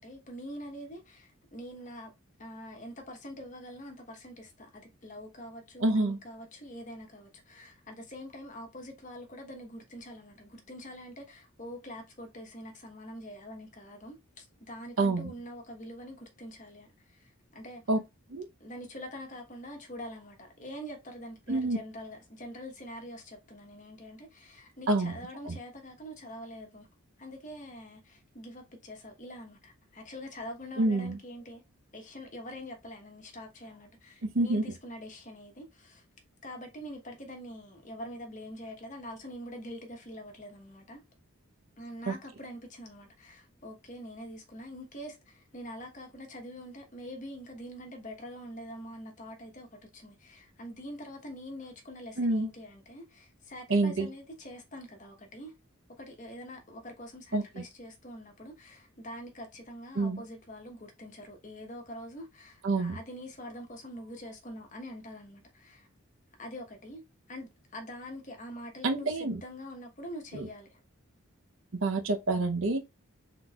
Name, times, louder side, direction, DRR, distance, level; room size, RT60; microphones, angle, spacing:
voice 1, 0.0-2.1 2.4-17.8 18.6-26.9 27.2-31.6 31.9-36.0 36.4-41.0 41.8-55.5 55.9-65.9 66.4-67.0 67.3-70.8, equal, 35° left, 1.1 m, -45 dB
voice 2, 5.8-6.2 15.0-15.3 17.9-18.0 18.3-18.4 21.5-21.8 24.9-25.1 25.4-25.6 30.8-31.2 34.2-34.6 42.1-42.2 52.2-52.5 53.7-54.1 57.3-57.4 59.9-60.2 62.6-63.0 68.8-69.4 70.3-70.5 71.7-72.8, right 2 dB, 60° right, 0.7 m, -27 dB
5.3 x 3.8 x 2.3 m
head